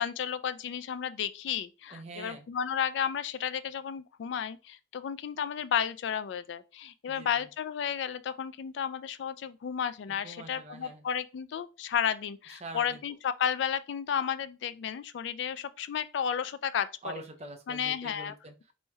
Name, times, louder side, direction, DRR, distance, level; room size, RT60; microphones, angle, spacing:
voice 1, 0.0-16.9 17.7-18.3, left 8 dB, 70° left, 0.3 m, -32 dB
voice 2, 1.9-2.5 7.1-7.5 10.1-11.0 12.5-13.0 17.0-18.7, right 2 dB, 35° right, 0.6 m, -45 dB
4.1 x 3.1 x 2.3 m
head